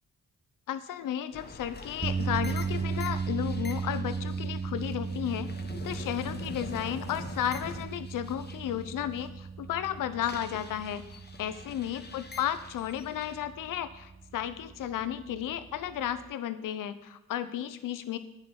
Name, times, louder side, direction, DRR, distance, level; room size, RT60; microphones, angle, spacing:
voice 1, 0.7-5.5 5.8-18.2, left 10 dB, 80° left, 12 dB, 1.0 m, -33 dB
sound 1, 1.3-9.3 9.6-13.4, left 4 dB, 30° left, 1.6 m, -46 dB
sound 2, 2.0-16.3, right 5 dB, 20° right, 0.6 m, -36 dB
10.5 x 9.4 x 6.0 m, 0.89 s
cardioid pair, 70°, 32 cm